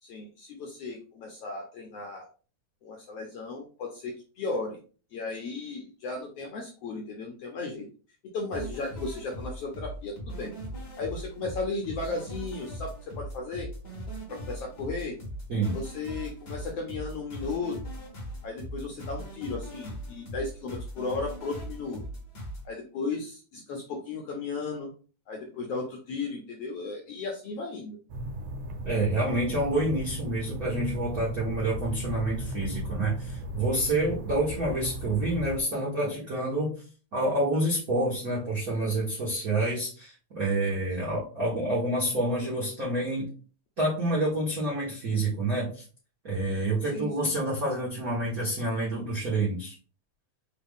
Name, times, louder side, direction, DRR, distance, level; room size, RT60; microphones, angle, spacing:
voice 1, 0.0-2.3 2.8-4.8 5.1-7.9 8.3-10.5 11.0-13.7 14.3-15.2 15.7-17.7 18.4-22.0 22.6-24.9 25.3-28.0 41.0-41.2 46.9-47.1, left 3 dB, 75° left, 0 dB, 1.4 m, -35 dB
sound 1, 8.5-22.6, right 1 dB, 60° left, 0.6 m, -39 dB
sound 2, 28.1-35.6, right 1 dB, 90° right, 2.2 m, -36 dB
voice 2, 28.8-36.7 37.1-43.3 43.8-45.8 46.2-49.7, right 1 dB, 70° right, -6 dB, 0.8 m, -28 dB
4.8 x 2.4 x 3.5 m, 0.38 s
omnidirectional pair, 3.4 m